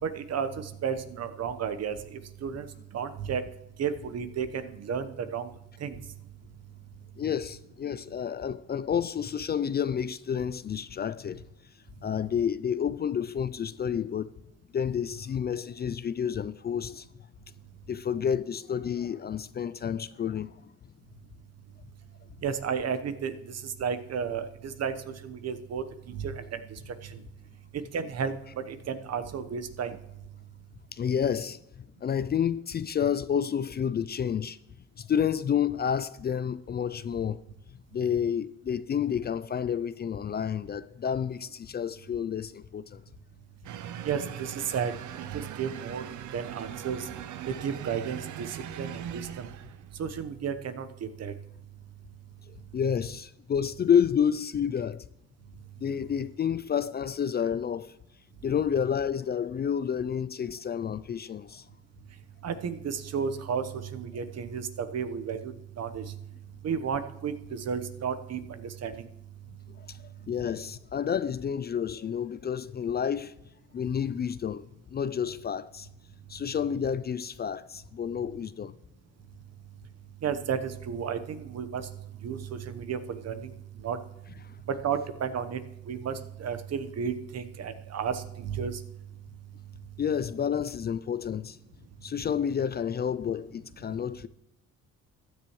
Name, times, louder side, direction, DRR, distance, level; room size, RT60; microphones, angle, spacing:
voice 1, 0.0-2.7 2.9-3.4 3.8-5.5 5.8-6.0 22.4-27.2 27.7-30.0 44.0-46.1 46.3-47.1 47.5-49.5 50.0-51.3 62.4-66.1 66.6-69.1 80.2-81.9 82.2-84.0 84.7-88.8, right 7 dB, 55° right, 1.1 m, -33 dB
voice 2, 7.2-11.4 12.0-14.3 14.7-17.1 17.9-20.5 30.9-31.6 32.0-34.6 35.0-37.4 37.9-43.0 52.7-55.0 55.8-57.9 58.4-61.6 69.9-70.0 70.3-73.3 73.7-74.6 74.9-75.9 76.3-78.7 90.0-91.6 92.0-94.3, left 8 dB, 35° left, 0.4 m, -29 dB
sound 1, 43.6-49.9, right 10 dB, 75° right, 0.8 m, -40 dB
15.0 x 10.0 x 3.1 m
cardioid pair, 90°, 30 cm